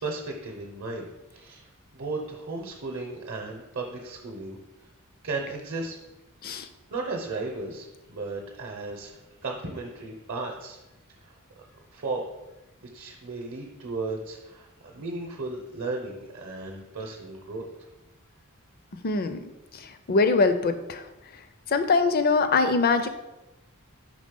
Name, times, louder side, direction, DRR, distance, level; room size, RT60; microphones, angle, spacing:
voice 1, 0.0-4.6 5.2-6.0 6.9-10.8 11.2-11.4 11.9-12.2 12.8-17.7, right 3 dB, 60° right, 0 dB, 0.8 m, -35 dB
voice 2, 19.0-21.0 21.7-23.1, left 4 dB, 45° left, 10 dB, 0.4 m, -23 dB
5.3 x 3.5 x 5.2 m, 1.0 s
head